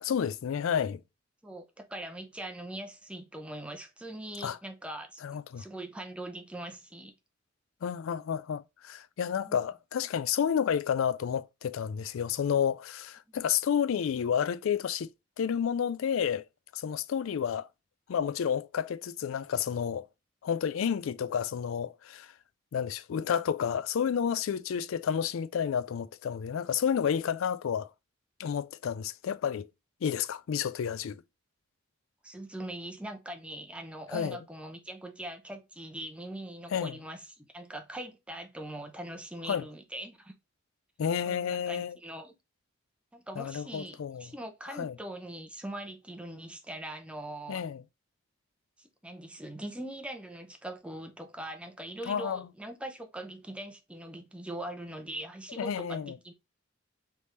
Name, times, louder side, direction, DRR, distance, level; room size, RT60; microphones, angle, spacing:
voice 1, 0.0-1.0 4.4-4.6 5.2-5.6 7.8-15.1 15.4-16.4 16.7-17.7 18.1-20.1 20.4-22.3 22.7-27.9 28.4-29.7 30.0-31.2 34.1-34.4 36.7-37.0 39.5-39.7 41.0-42.0 43.4-44.3 44.7-44.9 47.5-47.8 52.1-52.5 55.6-56.1, left 8 dB, 80° left, 0.4 m, -30 dB
voice 2, 1.4-5.2 5.6-7.1 9.4-9.6 32.2-40.3 41.2-42.3 43.1-47.7 48.8-56.3, right 1 dB, 5° right, 0.7 m, -42 dB
4.1 x 3.5 x 3.0 m
head